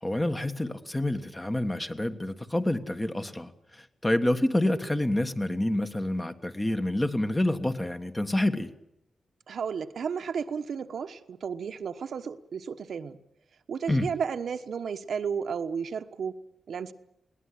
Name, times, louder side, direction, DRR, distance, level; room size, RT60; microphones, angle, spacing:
voice 1, 0.0-8.7 13.9-14.1, left 1 dB, 15° left, 1.4 m, -28 dB
voice 2, 9.5-13.2 13.7-16.4 16.7-16.9, right 6 dB, 70° right, 1.2 m, -33 dB
21.5 x 18.0 x 10.0 m
wide cardioid pair, 120°, 0 cm